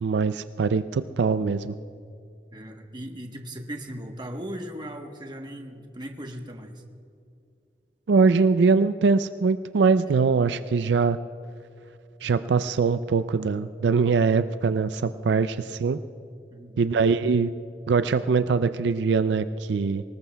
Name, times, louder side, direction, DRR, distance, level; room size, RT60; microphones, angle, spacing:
voice 1, 0.0-1.7 8.1-11.2 12.2-16.0 16.8-17.5 17.9-20.0, right 4 dB, 80° right, 12 dB, 0.4 m, -22 dB
voice 2, 2.5-6.7 16.5-16.9, equal, 25° right, 4 dB, 1.1 m, -38 dB
24.5 x 19.5 x 2.3 m, 2.5 s
head